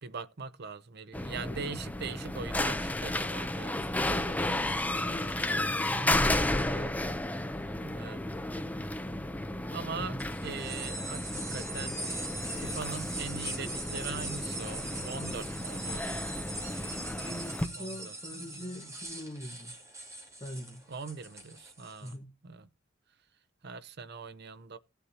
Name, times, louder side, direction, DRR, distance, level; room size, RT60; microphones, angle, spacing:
voice 1, 0.0-3.8 6.6-6.9 7.8-8.2 9.7-12.0 12.6-16.2 17.7-18.9 20.9-22.1 22.4-22.7 23.6-24.8, right 5 dB, 50° right, 0.7 m, -41 dB
sound 1, 1.1-17.7, left 1 dB, 10° left, 0.6 m, -33 dB
voice 2, 3.7-6.9 10.0-10.3 17.2-19.7 20.4-20.9 22.0-22.3, equal, 25° left, 1.4 m, -42 dB
sound 2, 10.2-22.1, right 2 dB, 15° right, 2.4 m, -41 dB
17.5 x 7.0 x 2.9 m
head